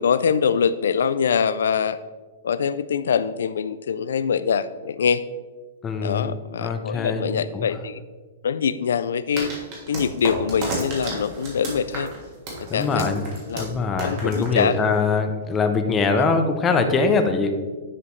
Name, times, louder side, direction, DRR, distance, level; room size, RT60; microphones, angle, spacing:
voice 1, 0.0-2.0 2.4-5.2 6.0-8.0 8.4-9.5 9.9-12.1 12.6-13.1 13.5-13.7 14.0-14.8, left 7 dB, 90° left, 14 dB, 0.3 m, -24 dB
voice 2, 5.8-6.3 6.6-7.3 7.5-7.7 12.7-13.2 13.5-17.6, left 4 dB, 15° left, 6 dB, 0.5 m, -22 dB
sound 1, 9.4-15.1, right 2 dB, 30° right, 1.7 m, -32 dB
9.9 x 4.9 x 3.2 m, 1.3 s
hypercardioid pair, 170°, 0 cm